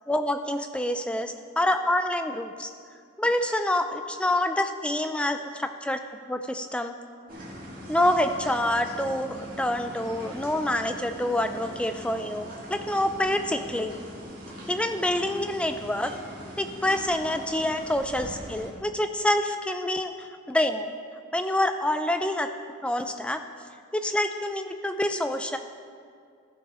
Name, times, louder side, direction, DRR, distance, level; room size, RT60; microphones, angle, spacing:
voice 1, 0.1-2.7 3.2-6.0 6.3-7.0 7.9-14.0 14.7-16.2 16.6-20.9 21.3-22.5 22.8-23.4 23.9-25.6, left 1 dB, 5° left, 7 dB, 0.3 m, -27 dB
sound 1, 7.3-18.7, equal, 40° right, 1.8 m, -41 dB
14.5 x 6.7 x 3.3 m, 2.2 s
head